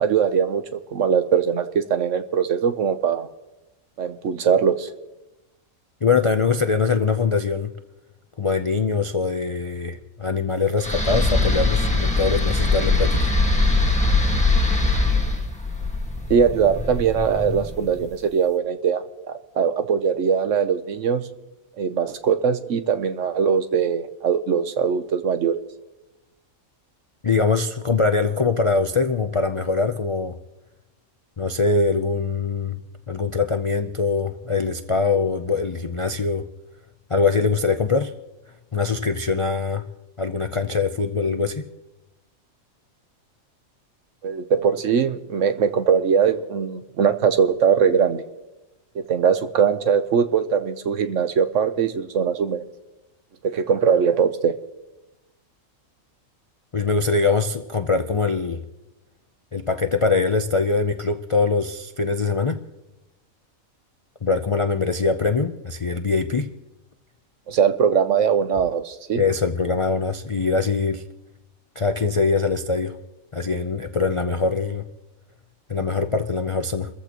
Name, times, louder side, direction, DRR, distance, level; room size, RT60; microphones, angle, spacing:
voice 1, 0.0-3.3 4.0-4.9 16.3-21.3 21.8-25.6 44.2-48.2 48.9-52.6 53.4-54.5 67.5-69.2, right 7 dB, 65° right, 10 dB, 1.2 m, -21 dB
voice 2, 6.0-7.7 8.4-13.3 27.2-30.3 31.4-32.8 33.1-36.4 37.1-38.1 38.7-39.9 40.2-41.7 56.7-58.6 59.5-62.6 64.2-66.5 69.2-71.0 71.8-73.0 73.3-74.8 75.7-76.9, left 4 dB, 45° left, 7 dB, 0.4 m, -23 dB
sound 1, 10.8-18.0, left 2 dB, 5° left, 1.6 m, -21 dB
29.5 x 14.5 x 3.0 m, 1.0 s
omnidirectional pair, 1.5 m